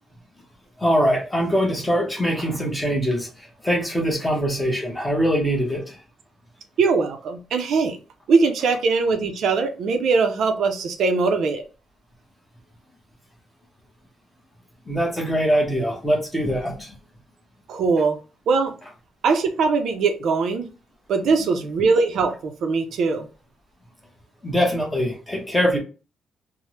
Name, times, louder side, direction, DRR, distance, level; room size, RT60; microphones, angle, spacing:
voice 1, 0.8-6.0 14.9-16.9 21.2-21.3 24.4-25.8, equal, 10° left, 0 dB, 0.8 m, -23 dB
voice 2, 6.8-8.0 8.3-11.6 17.7-18.2 18.5-18.7 19.2-20.7 21.1-23.3, right 4 dB, 65° right, 6 dB, 0.4 m, -21 dB
3.2 x 2.0 x 2.8 m, 0.34 s
cardioid pair, 150°, 0 cm